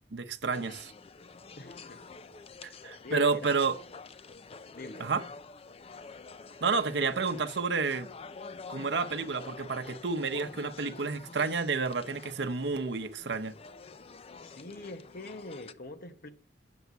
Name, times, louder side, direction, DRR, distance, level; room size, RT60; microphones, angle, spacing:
voice 1, 0.1-0.9 2.6-3.8 5.0-5.2 6.6-8.1 8.7-13.5, right 4 dB, 80° right, 0.8 m, -30 dB
sound 1, 0.5-15.7, left 4 dB, 35° left, 0.5 m, -48 dB
voice 2, 1.6-2.0 2.6-3.5 4.7-5.1 14.4-16.3, left 2 dB, 55° left, 1.2 m, -44 dB
8.1 x 7.0 x 8.1 m
head